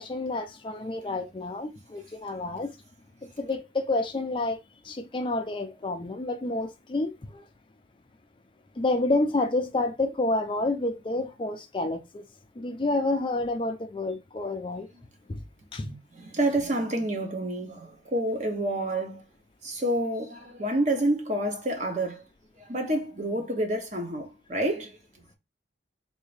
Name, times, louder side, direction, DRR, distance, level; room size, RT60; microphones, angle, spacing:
voice 1, 0.0-2.7 3.2-7.5 8.8-12.3 12.6-14.9 15.3-15.4 15.7-16.0, left 2 dB, 25° left, 0.4 m, -29 dB
voice 2, 16.2-19.2 19.6-22.2 22.7-25.0, right 1 dB, 40° right, 0.8 m, -28 dB
3.6 x 2.6 x 3.2 m
head